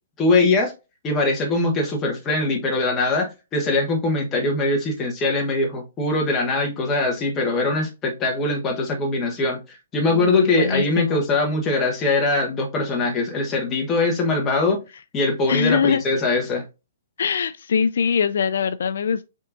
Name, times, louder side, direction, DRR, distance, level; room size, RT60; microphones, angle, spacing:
voice 1, 0.2-0.7 1.0-9.6 9.9-14.8 15.1-16.6, left 2 dB, 15° left, 1.1 m, -22 dB
voice 2, 10.1-11.2 15.5-16.0 17.2-19.2, left 6 dB, 65° left, 0.4 m, -22 dB
5.3 x 3.6 x 2.5 m
hypercardioid pair, 170°, 0 cm